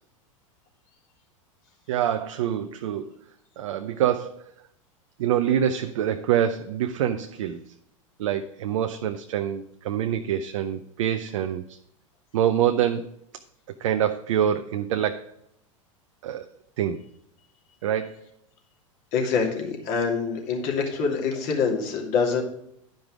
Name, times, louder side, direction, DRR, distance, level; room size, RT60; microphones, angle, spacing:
voice 1, 1.9-3.1 3.6-4.4 5.2-7.6 8.2-11.8 12.3-13.1 13.8-15.3 16.2-16.5 16.8-17.0 17.8-18.2, right 10 dB, 70° right, 7 dB, 0.6 m, -25 dB
voice 2, 19.1-22.4, left 5 dB, 55° left, 0 dB, 2.6 m, -25 dB
10.5 x 5.3 x 4.8 m, 0.76 s
hypercardioid pair, 95°, 17 cm